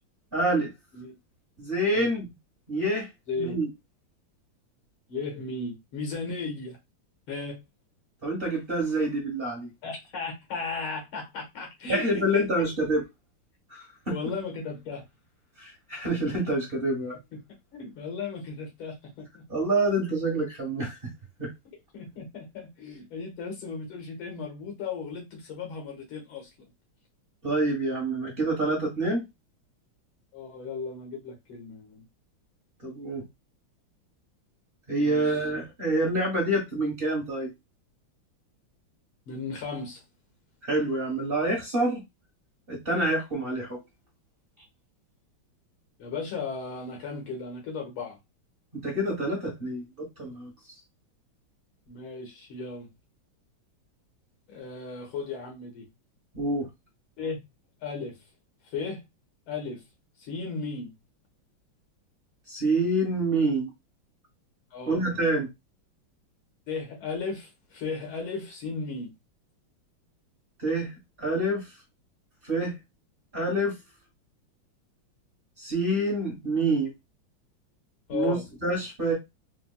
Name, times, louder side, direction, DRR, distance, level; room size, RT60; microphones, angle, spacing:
voice 1, 0.3-0.7 1.6-2.3 2.7-3.1 3.4-3.7 8.2-9.7 11.9-13.0 13.7-14.2 15.6-17.2 19.5-21.0 21.4-21.5 27.4-29.2 32.8-33.2 34.9-37.5 40.6-42.0 42.7-43.8 48.8-50.5 56.3-56.7 62.5-63.7 64.9-65.5 70.6-70.9 71.2-71.6 72.4-72.7 73.3-73.7 75.6-76.9 78.1-79.1, right 1 dB, 30° right, 1.2 m, -27 dB
voice 2, 3.3-3.6 5.1-6.8 7.3-7.6 9.8-12.0 12.3-12.5 14.1-15.0 17.3-17.4 17.7-19.4 21.9-26.5 30.3-32.0 34.9-35.4 39.3-40.0 46.0-48.2 51.9-52.9 54.5-55.9 57.2-57.4 57.8-58.2 58.7-59.0 59.5-59.8 60.2-60.9 64.7-65.1 66.7-69.1 78.1-78.5, left 4 dB, 85° left, 2.0 m, -35 dB
4.2 x 2.2 x 2.2 m
omnidirectional pair, 2.2 m